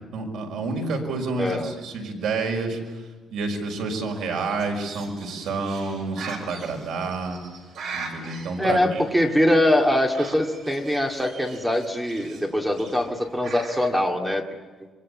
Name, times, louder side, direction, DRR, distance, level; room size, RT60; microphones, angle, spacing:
voice 1, 0.1-2.8 3.3-7.4 7.9-9.0, right 3 dB, 90° right, 3 dB, 5.9 m, -29 dB
voice 2, 1.4-1.7 8.6-14.5, left 1 dB, 5° right, 3 dB, 2.2 m, -23 dB
Bird, 4.1-13.9, right 4 dB, 70° right, 5.8 m, -41 dB
26.5 x 23.0 x 8.6 m, 1.3 s
cardioid pair, 170°, 0 cm